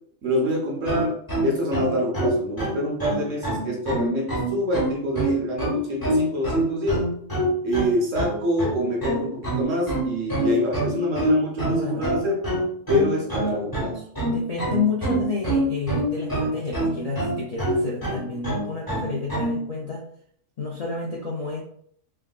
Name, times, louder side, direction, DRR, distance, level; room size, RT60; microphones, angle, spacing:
voice 1, 0.2-7.0 7.6-12.3 12.9-14.0, equal, 70° right, -2 dB, 1.3 m, -26 dB
sound 1, 0.9-19.6, right 1 dB, 15° left, 1.0 m, -25 dB
voice 2, 11.7-12.1 14.3-20.0 20.6-21.6, left 4 dB, 55° left, -4 dB, 0.4 m, -30 dB
3.4 x 2.4 x 2.3 m, 0.63 s
omnidirectional pair, 1.4 m